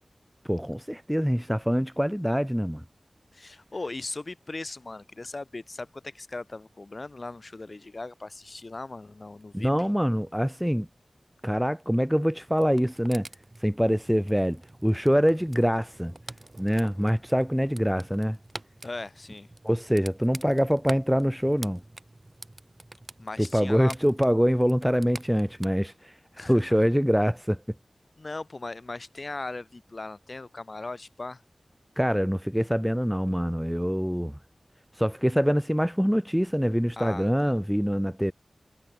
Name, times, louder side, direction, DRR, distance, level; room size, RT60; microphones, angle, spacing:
voice 1, 0.5-2.8 9.5-10.9 11.4-13.3 13.6-16.1 16.6-18.4 19.6-21.8 23.4-26.1 26.4-27.6 32.0-34.4 35.0-38.3, equal, 5° right, 0.9 m, -24 dB
voice 2, 3.3-9.7 18.8-19.5 23.2-23.9 26.4-26.8 28.2-31.4 37.0-37.5, left 2 dB, 50° left, 3.5 m, -38 dB
sound 1, 12.5-25.7, right 2 dB, 30° right, 5.8 m, -47 dB
wide cardioid pair, 65°, 0 cm